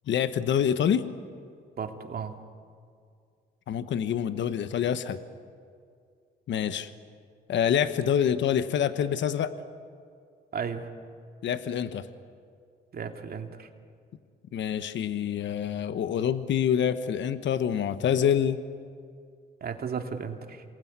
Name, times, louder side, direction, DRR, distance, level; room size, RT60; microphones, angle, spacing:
voice 1, 0.1-1.1 3.7-5.2 6.5-6.9 7.5-9.5 11.4-12.1 14.5-18.6, left 9 dB, 65° left, 11 dB, 1.2 m, -26 dB
voice 2, 1.8-2.4 10.5-10.9 12.9-13.7 19.6-20.6, right 6 dB, 50° right, 4 dB, 2.6 m, -34 dB
27.5 x 20.5 x 9.7 m, 2.2 s
cardioid pair, 90°, 20 cm